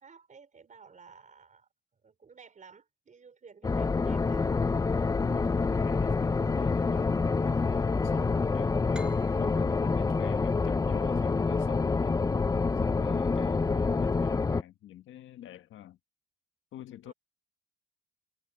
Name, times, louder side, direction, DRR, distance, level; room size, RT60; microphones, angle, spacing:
voice 1, 0.0-1.7 2.0-4.5 17.0-17.1, right 5 dB, 40° right, 4.0 m, -54 dB
sound 1, 3.6-14.6, left 4 dB, 20° left, 0.5 m, -27 dB
voice 2, 5.1-12.2 12.8-16.0 16.7-17.1, left 12 dB, 75° left, 1.4 m, -47 dB
sound 2, 8.9-12.3, right 1 dB, 5° right, 6.2 m, -54 dB
cardioid pair, 90°, 20 cm